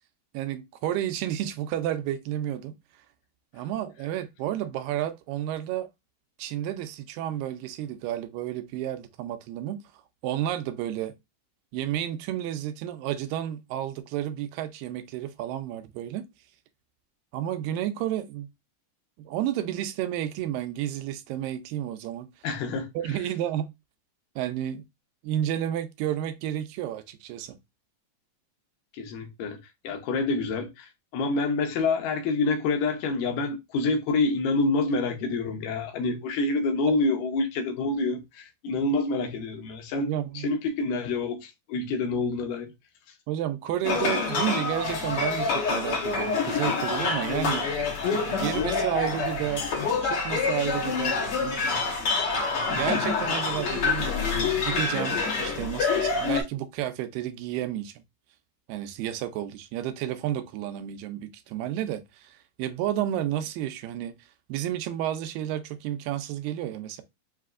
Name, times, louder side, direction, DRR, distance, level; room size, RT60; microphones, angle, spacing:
voice 1, 0.3-2.8 3.5-5.9 6.4-9.8 10.2-11.1 11.7-16.3 17.3-18.5 19.2-22.3 23.0-23.7 24.4-24.8 25.2-27.6 36.9-37.0 40.0-40.5 43.3-47.7 48.3-49.7 50.0-51.7 52.7-58.0 58.7-64.1 64.5-67.0, right 12 dB, 85° right, 2.2 m, -31 dB
voice 2, 22.4-22.9 28.9-29.6 29.8-40.1 40.4-42.7, left 3 dB, 80° left, 2.3 m, -27 dB
sound 1, 43.8-56.4, left 4 dB, 60° left, 1.6 m, -27 dB
5.8 x 2.7 x 2.4 m
omnidirectional pair, 4.0 m